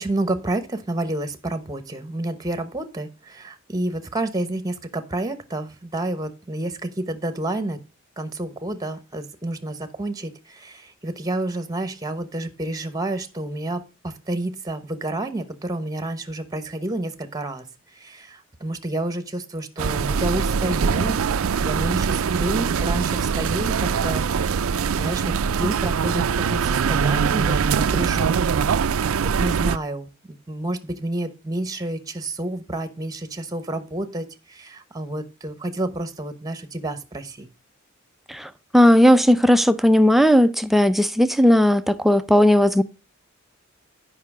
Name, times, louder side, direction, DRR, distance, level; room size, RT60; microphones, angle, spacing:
voice 1, 0.0-7.8 8.2-17.6 17.9-21.2 21.6-24.6 24.9-28.7 29.2-37.5, right 2 dB, 20° right, 1.0 m, -29 dB
sound 1, 19.8-29.8, right 6 dB, 75° right, 0.4 m, -22 dB
voice 2, 38.3-42.8, equal, ahead, 0.5 m, -16 dB
9.5 x 5.6 x 4.8 m
head